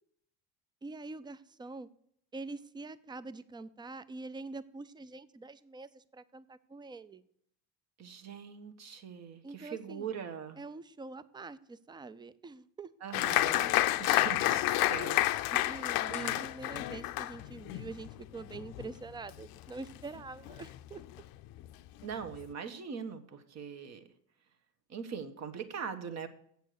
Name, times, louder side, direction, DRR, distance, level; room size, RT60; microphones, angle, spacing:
voice 1, 0.8-1.9 2.3-7.2 9.4-10.1 10.6-12.9 15.5-21.0, right 3 dB, 10° right, 16 dB, 0.4 m, -45 dB
voice 2, 8.0-10.6 13.0-15.3 16.1-16.4 22.0-24.0 24.9-26.3, right 7 dB, 45° right, 9 dB, 1.3 m, -41 dB
Applause, 13.1-20.2 20.5-21.2 21.6-21.7 22.0-22.5, left 16 dB, 70° left, 0.6 m, -30 dB
8.1 x 6.9 x 6.5 m, 0.67 s
supercardioid pair, 105°, 37 cm